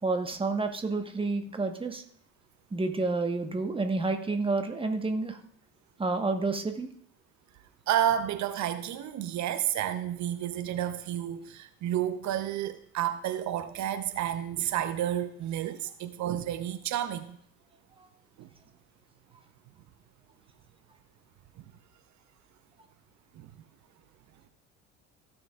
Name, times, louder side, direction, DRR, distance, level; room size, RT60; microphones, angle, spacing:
voice 1, 0.0-2.0 2.7-5.4 6.0-6.9 18.0-18.1, right 3 dB, 15° right, 5 dB, 1.2 m, -29 dB
voice 2, 7.9-17.4 18.4-18.5 23.4-23.5, right 11 dB, 50° right, 11 dB, 0.8 m, -31 dB
15.5 x 6.4 x 2.4 m, 0.63 s
figure-of-eight pair, 60°, 38 cm